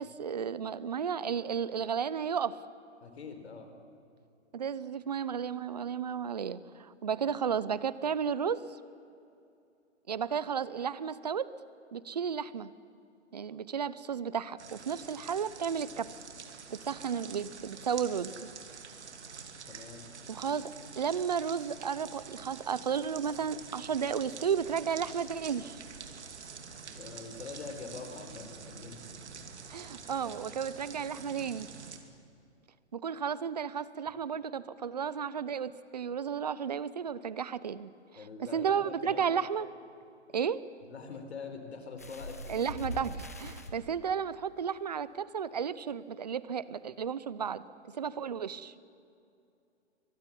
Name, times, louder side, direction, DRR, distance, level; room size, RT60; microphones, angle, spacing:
voice 1, 0.0-2.6 4.5-8.8 10.1-11.5 11.9-12.7 13.3-16.2 16.7-18.5 20.3-25.8 29.7-31.7 32.9-39.7 40.3-40.6 42.5-47.6 47.9-48.7, right 7 dB, 35° right, 17 dB, 0.7 m, -33 dB
voice 2, 3.0-3.7 19.7-20.0 26.7-29.0 38.2-39.4 40.9-43.1, left 4 dB, 60° left, 6 dB, 4.5 m, -44 dB
sound 1, 14.6-32.0, right 5 dB, 65° right, 2.8 m, -47 dB
sound 2, 42.0-43.7 44.7-44.8 45.2-45.3, left 1 dB, 15° left, 0.5 m, -41 dB
23.5 x 20.0 x 10.0 m, 2.6 s
hypercardioid pair, 175°, 36 cm